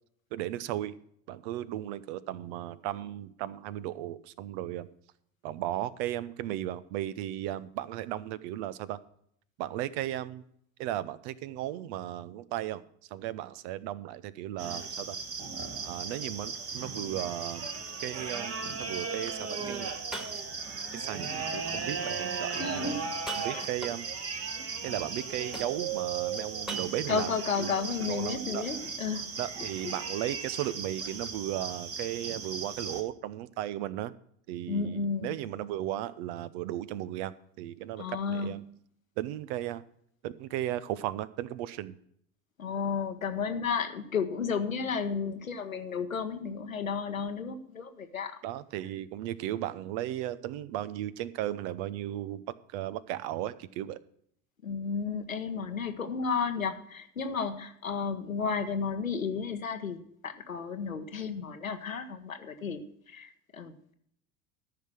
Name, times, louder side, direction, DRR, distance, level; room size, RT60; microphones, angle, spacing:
voice 1, 0.3-0.9 1.3-4.9 5.4-9.0 9.6-10.4 10.8-12.8 13.1-15.2 15.8-17.7 18.0-19.9 20.9-22.9 23.4-24.1 24.8-27.7 28.0-28.7 29.4-34.1 34.5-38.6 39.2-39.8 40.2-42.0 48.4-52.4 52.7-54.0, right 13 dB, 55° right, 16 dB, 0.8 m, -35 dB
sound 1, 14.6-33.0, right 5 dB, 35° right, 1.8 m, -36 dB
sound 2, 16.6-16.7 17.4-17.5 19.5-19.6 20.1-20.8 23.1-24.3 25.5-26.1 26.7-27.3, right 3 dB, ahead, 1.8 m, -40 dB
voice 2, 22.6-23.1 23.5-23.7 27.1-29.3 34.7-35.4 38.0-38.5 42.6-48.4 54.6-63.9, left 5 dB, 90° left, 8 dB, 1.1 m, -33 dB
13.5 x 5.9 x 6.1 m, 0.67 s
figure-of-eight pair, 70°, 39 cm